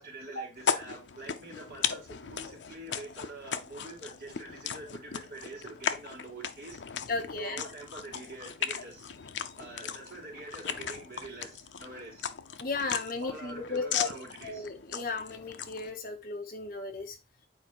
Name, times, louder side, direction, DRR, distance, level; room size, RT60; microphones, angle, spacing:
voice 1, 0.0-6.8 7.3-9.1 9.6-12.3 13.2-14.7, right 2 dB, 50° right, 3.3 m, -45 dB
sound 1, 0.6-15.9, left 7 dB, 80° left, 0.6 m, -37 dB
voice 2, 7.1-7.6 12.6-14.1 14.4-17.2, left 3 dB, 50° left, 1.1 m, -35 dB
8.8 x 4.5 x 3.1 m
head